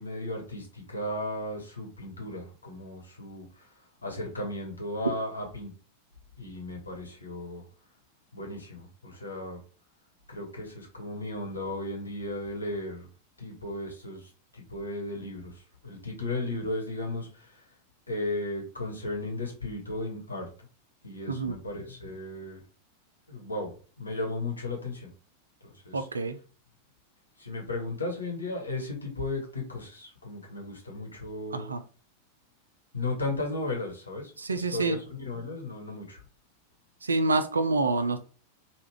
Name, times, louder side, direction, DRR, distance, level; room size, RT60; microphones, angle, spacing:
voice 1, 0.0-5.7 6.4-7.6 8.3-9.6 10.3-13.1 13.4-17.6 18.1-20.5 21.0-22.6 23.3-25.1 25.6-26.1 27.4-31.7 32.9-36.2, left 2 dB, 80° left, 0 dB, 1.1 m, -35 dB
voice 2, 25.9-26.4 31.5-31.8 34.4-35.0 37.0-38.2, right 3 dB, 75° right, 10 dB, 0.4 m, -27 dB
3.5 x 2.3 x 3.2 m, 0.37 s
figure-of-eight pair, 90°, 0 cm